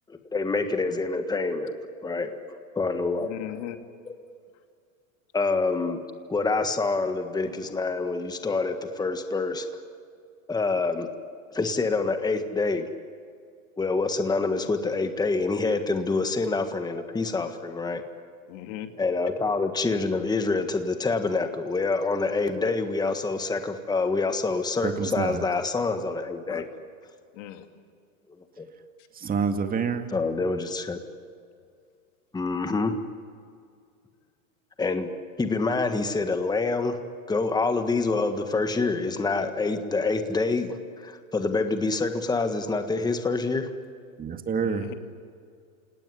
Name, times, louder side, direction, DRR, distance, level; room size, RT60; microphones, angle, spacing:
voice 1, 0.1-1.8 2.0-2.3 2.8-3.3 5.3-6.0 6.3-9.8 10.5-11.1 11.5-12.9 13.8-18.0 19.0-26.6 28.6-28.7 30.1-31.0 32.3-33.0 34.8-35.1 35.4-37.0 37.3-43.7, left 3 dB, 10° left, 7 dB, 1.6 m, -26 dB
voice 2, 3.2-3.8 18.5-18.9 26.5-26.6 27.3-27.7 44.6-44.9, left 13 dB, 60° left, 6 dB, 2.7 m, -37 dB
voice 3, 24.8-25.5 29.1-30.1 44.2-44.9, right 6 dB, 20° right, 7 dB, 2.1 m, -28 dB
28.5 x 18.0 x 9.9 m, 2.2 s
hypercardioid pair, 120°, 42 cm